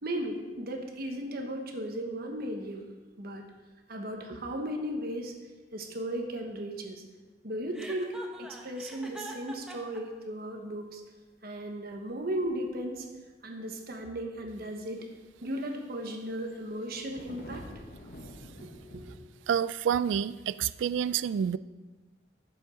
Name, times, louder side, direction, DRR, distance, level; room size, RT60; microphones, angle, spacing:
voice 1, 0.0-2.9 3.2-3.5 3.9-5.3 5.7-7.0 7.4-11.0 11.4-13.1 13.4-15.1 15.4-17.7 18.6-19.1, right 1 dB, 55° right, 3 dB, 1.2 m, -36 dB
Chuckle chortle, 7.7-10.0, right 1 dB, 5° right, 1.0 m, -43 dB
sound 1, 12.2-13.3 13.9-14.1 15.1-15.2 16.4-19.2, left 1 dB, 55° left, 1.1 m, -48 dB
voice 2, 19.5-21.6, right 8 dB, 80° right, 17 dB, 0.3 m, -28 dB
8.7 x 7.2 x 5.1 m, 1.2 s
head